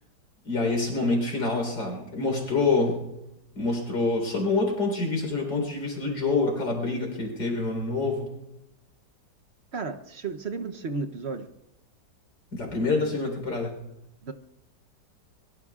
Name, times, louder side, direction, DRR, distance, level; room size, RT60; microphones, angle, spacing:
voice 1, 0.4-3.0 3.6-8.3 12.5-13.7, left 3 dB, 85° left, 1 dB, 4.7 m, -26 dB
voice 2, 9.7-11.5 14.2-14.3, right 4 dB, 50° right, 7 dB, 0.9 m, -33 dB
24.0 x 22.5 x 2.4 m, 0.93 s
omnidirectional pair, 1.9 m